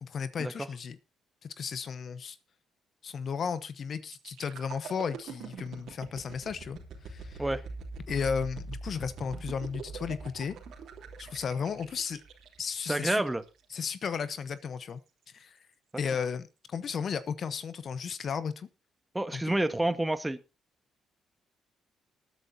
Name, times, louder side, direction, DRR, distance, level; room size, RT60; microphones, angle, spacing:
voice 1, 0.0-1.0 1.4-2.4 3.0-6.8 7.0-7.4 8.1-10.6 11.2-12.2 12.6-13.2 13.7-15.0 15.3-15.6 15.9-18.7 19.3-19.4, left 6 dB, 55° left, 15 dB, 0.9 m, -34 dB
sound 1, 4.1-13.9 14.4-14.6, right 4 dB, 70° right, 2.9 m, -43 dB
voice 2, 12.9-13.4 19.1-20.4, right 1 dB, 15° right, 11 dB, 1.4 m, -28 dB
20.5 x 9.4 x 2.8 m, 0.29 s
hypercardioid pair, 50°, 0 cm